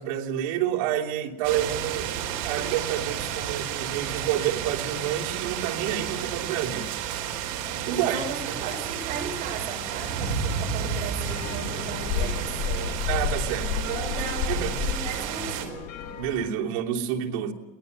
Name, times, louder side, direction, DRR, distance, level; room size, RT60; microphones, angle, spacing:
voice 1, 0.0-2.1 2.4-7.3 7.8-8.6 13.1-13.7 14.5-14.7 16.2-17.5, right 10 dB, 90° right, -1 dB, 3.1 m, -29 dB
sound 1, 1.4-15.7, right 8 dB, 70° right, 4.0 m, -31 dB
voice 2, 7.9-13.1 13.6-15.9, right 5 dB, 45° right, 2 dB, 6.8 m, -36 dB
sound 2, 11.3-16.5, left 7 dB, 55° left, 2.8 m, -31 dB
22.5 x 19.0 x 8.2 m, 1.1 s
cardioid pair, 165°, 18 cm